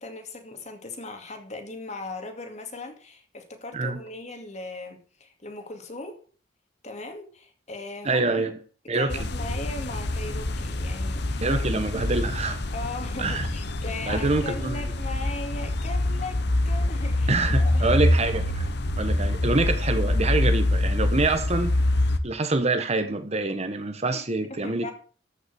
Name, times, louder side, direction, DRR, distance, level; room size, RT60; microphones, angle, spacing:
voice 1, 0.0-6.2 6.8-8.6 8.9-12.1 12.7-16.4 16.6-18.0 24.1-24.2 24.5-24.9, left 2 dB, 40° left, 2.4 m, -38 dB
voice 2, 8.0-8.6 8.9-9.2 11.4-12.6 13.2-13.5 14.1-14.8 17.3-18.7 19.0-21.7 22.2-24.9, right 2 dB, 35° right, 1.2 m, -26 dB
sound 1, 9.1-22.2, left 1 dB, 60° left, 1.1 m, -25 dB
14.0 x 6.1 x 6.9 m
head